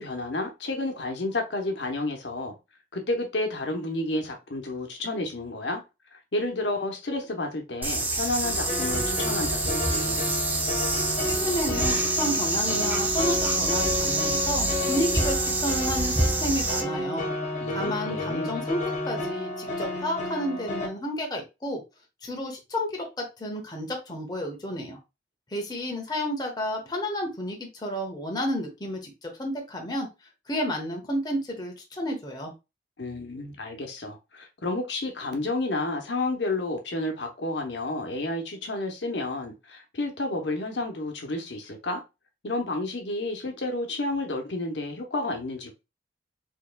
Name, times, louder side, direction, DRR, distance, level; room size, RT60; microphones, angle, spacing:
voice 1, 0.0-2.6 2.9-5.8 6.1-10.2 17.6-18.5 33.0-42.0 42.4-45.7, left 2 dB, 85° left, 0.9 m, -31 dB
sound 1, 7.8-16.8, right 2 dB, 10° right, 0.6 m, -27 dB
sound 2, 8.4-20.9, left 2 dB, 45° left, 1.2 m, -31 dB
voice 2, 11.2-17.2 17.7-21.8 22.2-25.0 25.5-30.1 30.5-32.5, equal, 25° left, 1.0 m, -31 dB
4.5 x 3.0 x 2.2 m
head